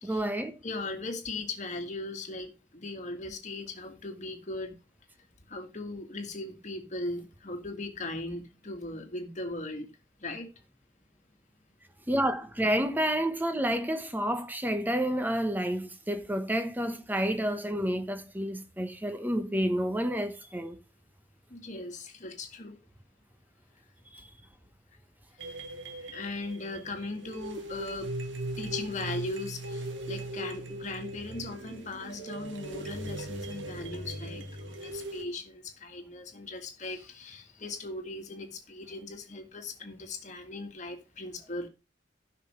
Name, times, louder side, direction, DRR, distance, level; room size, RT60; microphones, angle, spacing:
voice 1, 0.0-0.6 12.1-20.8 24.1-24.2, equal, 10° right, 1.0 m, -29 dB
voice 2, 0.6-4.8 5.5-9.9 10.2-10.5 21.5-22.8 26.0-28.1 28.6-41.7, left 2 dB, 40° left, 1.8 m, -38 dB
sound 1, 25.4-35.2, right 1 dB, 85° right, 1.5 m, -39 dB
16.0 x 6.0 x 3.1 m
head